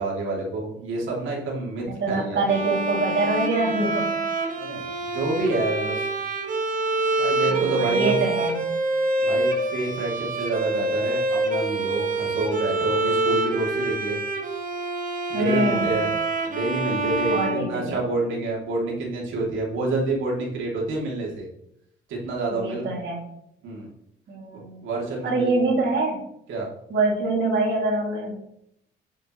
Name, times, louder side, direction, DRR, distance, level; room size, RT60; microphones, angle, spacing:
voice 1, 0.0-2.4 4.6-6.1 7.2-8.2 9.2-14.2 15.3-16.1 16.5-21.5 22.1-22.9 23.6-23.9 24.5-25.5 26.5-26.7, right 2 dB, 80° right, -2 dB, 3.0 m, -28 dB
voice 2, 1.9-4.2 7.5-8.6 15.3-16.1 17.3-18.0 22.5-23.2 24.3-24.9 25.2-26.2 26.9-28.4, right 2 dB, 65° right, -1 dB, 2.8 m, -25 dB
Bowed string instrument, 2.5-18.3, right 2 dB, 45° right, 1.2 m, -26 dB
8.8 x 7.0 x 3.2 m, 0.76 s
cardioid pair, 90°, 20 cm